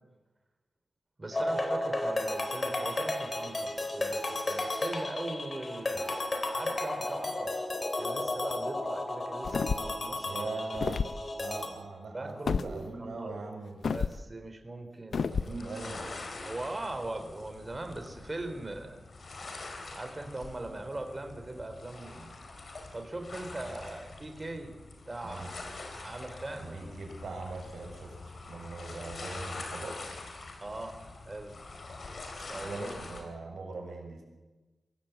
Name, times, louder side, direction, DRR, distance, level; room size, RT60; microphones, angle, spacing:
voice 1, 1.2-6.1 6.4-7.5 7.9-10.4 12.1-13.3 13.9-16.1 16.4-19.0 19.9-22.3 22.9-24.7 25.1-25.5 26.0-26.9 30.6-31.0 31.2-31.5 32.5-32.9, right 2 dB, 30° right, 7 dB, 3.3 m, -40 dB
sound 1, 1.3-11.7, left 2 dB, 35° left, 3.6 m, -33 dB
sound 2, 9.4-10.0 10.7-11.2 12.5-12.7 13.8-14.2 15.1-15.5, left 5 dB, 80° left, 0.6 m, -30 dB
voice 2, 10.2-11.0 11.4-13.9 15.1-16.1 25.2-25.5 26.6-30.0 32.6-34.2, right 3 dB, 85° right, 1 dB, 6.6 m, -41 dB
sound 3, 15.1-33.2, left 3 dB, 60° left, 4.1 m, -45 dB
23.0 x 17.0 x 8.1 m, 1.2 s
wide cardioid pair, 95°, 0 cm